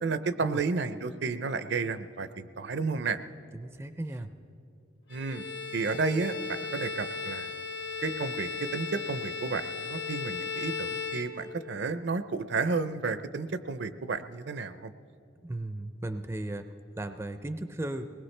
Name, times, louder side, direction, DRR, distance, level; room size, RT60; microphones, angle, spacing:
voice 1, 0.0-3.2 5.1-5.4 5.7-7.5 8.0-14.9, right 4 dB, 65° right, 12 dB, 0.5 m, -32 dB
voice 2, 3.5-4.3 15.4-18.1, right 1 dB, 15° right, 9 dB, 0.4 m, -36 dB
Bowed string instrument, 5.1-11.9, left 5 dB, 65° left, 1.1 m, -36 dB
21.5 x 19.5 x 3.3 m, 2.6 s
head